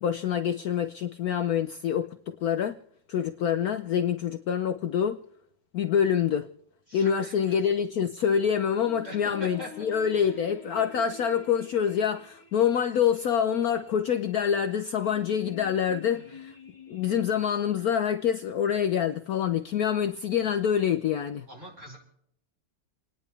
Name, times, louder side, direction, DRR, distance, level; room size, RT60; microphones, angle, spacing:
voice 1, 0.0-2.8 3.1-5.2 5.7-6.5 6.9-16.5 16.9-21.5, left 8 dB, 65° left, 1.0 m, -26 dB
voice 2, 6.9-7.6 9.0-9.7 10.2-10.5 16.1-16.4 21.5-22.0, equal, 40° right, 5.2 m, -43 dB
sound 1, 7.0-17.5, left 4 dB, 20° left, 1.8 m, -48 dB
30.0 x 10.0 x 3.3 m
omnidirectional pair, 2.0 m